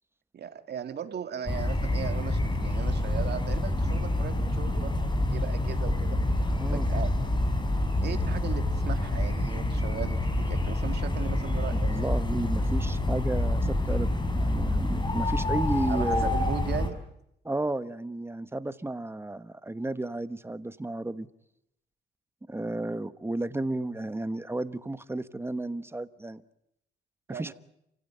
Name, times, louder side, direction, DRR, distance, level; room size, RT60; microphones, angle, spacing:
voice 1, 0.3-6.2 6.7-7.1 8.0-12.1 15.9-17.0 27.3-27.5, right 8 dB, 55° right, 7 dB, 2.4 m, -38 dB
sound 1, 1.5-16.9, left 1 dB, 25° left, 4.3 m, -27 dB
voice 2, 11.7-16.3 17.4-21.3 22.5-26.4 27.3-27.5, right 2 dB, 10° right, 13 dB, 1.2 m, -33 dB
29.0 x 16.5 x 9.1 m, 0.78 s
cardioid pair, 90°, 20 cm